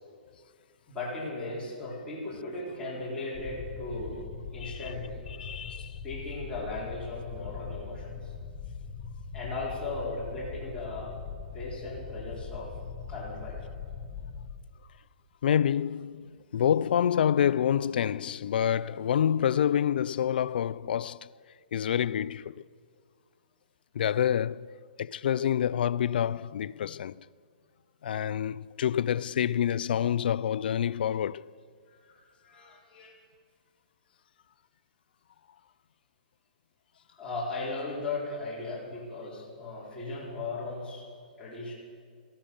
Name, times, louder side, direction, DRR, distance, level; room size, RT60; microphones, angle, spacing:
voice 1, 0.9-5.2 5.7-8.3 9.3-11.1 11.5-12.7 13.1-13.7 31.9-33.1 37.2-41.0 41.4-41.7, left 2 dB, 15° left, 4.1 m, -37 dB
sound 1, 3.3-14.5, left 6 dB, 40° left, 2.3 m, -41 dB
voice 2, 5.4-6.0 15.4-21.3 21.7-22.6 23.9-24.7 25.0-27.2 28.0-31.5, left 9 dB, 70° left, 0.3 m, -27 dB
14.0 x 13.0 x 7.1 m
hypercardioid pair, 140°, 5 cm